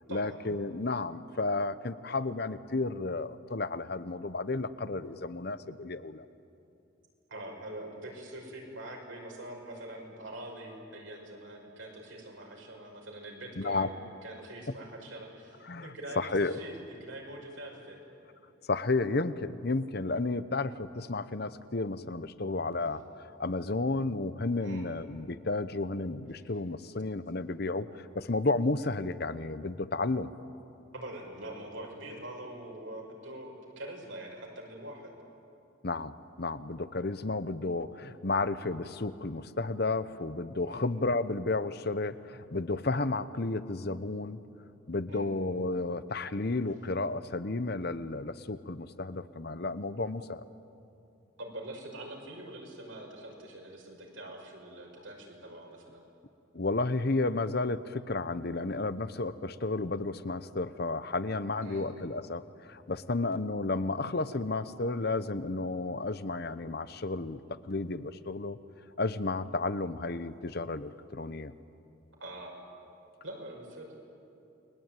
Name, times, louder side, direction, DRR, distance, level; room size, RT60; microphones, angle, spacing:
voice 1, 0.1-6.3 13.6-13.9 15.6-16.6 18.7-30.3 35.8-44.4 44.9-50.4 56.5-67.4 67.7-68.6 69.0-71.5, left 3 dB, 50° left, 14 dB, 0.9 m, -32 dB
voice 2, 7.3-14.0 14.2-18.0 24.6-24.8 26.4-26.5 30.9-35.1 40.7-40.8 45.1-45.3 51.4-56.0 61.6-61.8 72.2-72.5 73.2-73.9, right 1 dB, 70° right, 0 dB, 5.9 m, -44 dB
29.5 x 22.0 x 9.2 m, 2.7 s
head